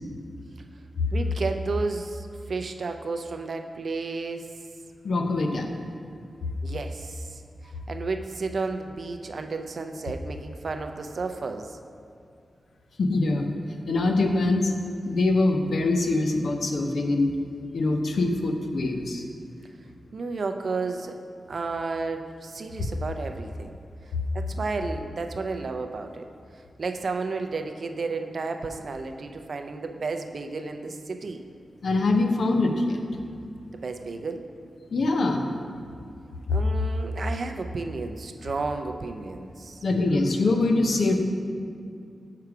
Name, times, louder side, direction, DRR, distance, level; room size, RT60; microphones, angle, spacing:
voice 1, 1.1-4.5 6.6-7.4 7.9-11.8 20.1-21.2 21.5-23.8 24.3-26.3 26.8-31.4 33.7-34.5 36.5-39.8, right 4 dB, 55° right, 6 dB, 0.4 m, -32 dB
voice 2, 5.0-5.7 13.0-13.5 13.9-14.7 15.1-17.3 17.7-19.2 31.8-33.0 34.9-35.5 36.5-36.6 39.8-41.1, left 2 dB, 70° left, 4 dB, 0.6 m, -23 dB
6.7 x 4.7 x 4.8 m, 2.4 s
wide cardioid pair, 120°, 0 cm